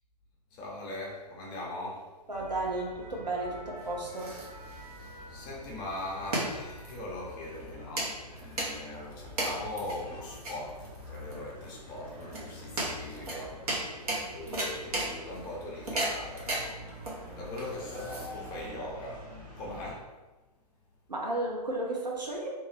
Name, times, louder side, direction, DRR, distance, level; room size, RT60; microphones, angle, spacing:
voice 1, 0.5-2.1 5.3-14.0 14.3-16.8 17.1-19.3 19.5-20.1, left 1 dB, 20° left, -3 dB, 0.6 m, -41 dB
sound 1, 2.3-20.0, left 1 dB, 25° right, 0.8 m, -47 dB
voice 2, 2.3-4.3 21.1-22.5, right 2 dB, 85° right, -1 dB, 0.7 m, -33 dB
sound 2, 3.8-18.7, right 1 dB, 60° right, 0.9 m, -36 dB
2.8 x 2.3 x 3.2 m, 1.2 s
figure-of-eight pair, 120°, 21 cm